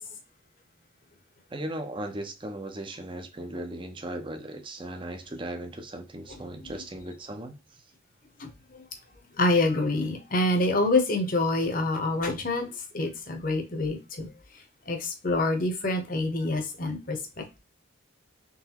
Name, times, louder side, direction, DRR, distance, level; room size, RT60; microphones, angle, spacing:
voice 1, 1.5-7.5, right 1 dB, 25° right, 0.6 m, -37 dB
voice 2, 9.4-12.7 12.9-14.3 14.9-17.6, left 2 dB, 45° left, 0.9 m, -26 dB
3.9 x 3.3 x 2.9 m
head